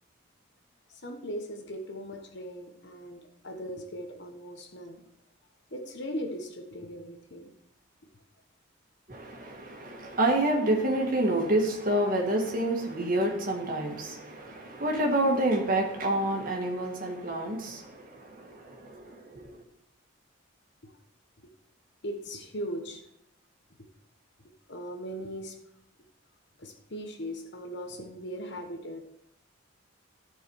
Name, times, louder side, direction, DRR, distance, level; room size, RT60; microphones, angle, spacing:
voice 1, 0.9-5.0 5.7-7.5 20.8-20.9 22.0-23.0 24.7-25.6 26.6-29.0, equal, 55° left, 4 dB, 1.2 m, -39 dB
voice 2, 9.1-19.5, right 1 dB, 45° right, 0 dB, 1.8 m, -28 dB
13.5 x 4.8 x 4.7 m, 0.77 s
head